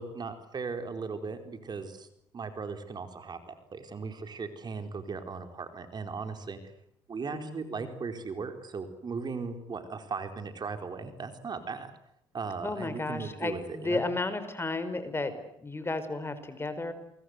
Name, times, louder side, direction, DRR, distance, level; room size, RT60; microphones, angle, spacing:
voice 1, 0.0-2.1 2.3-6.6 7.1-11.9 12.3-14.0, right 4 dB, 45° right, 7 dB, 4.4 m, -37 dB
voice 2, 7.3-7.8 12.6-16.9, left 2 dB, 25° left, 11 dB, 5.1 m, -33 dB
28.5 x 23.0 x 8.2 m, 0.75 s
supercardioid pair, 65°, 10 cm